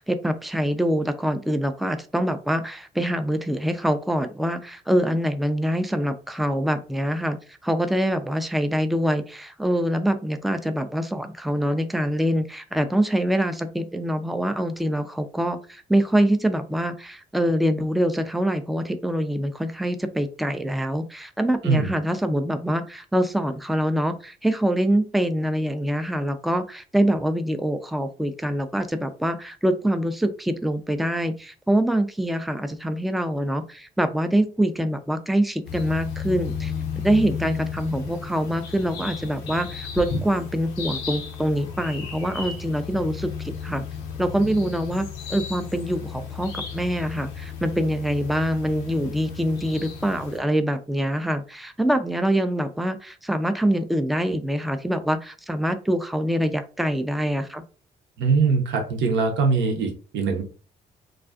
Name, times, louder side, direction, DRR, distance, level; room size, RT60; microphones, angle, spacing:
voice 1, 0.0-7.4 7.6-36.7 37.0-43.8 44.2-57.6, equal, ahead, 9 dB, 0.3 m, -24 dB
sound 1, 35.6-50.4, left 6 dB, 85° left, 0.5 m, -34 dB
voice 2, 58.2-60.4, right 4 dB, 70° right, 3 dB, 0.7 m, -22 dB
2.4 x 2.3 x 2.4 m, 0.36 s
hypercardioid pair, 50°, 19 cm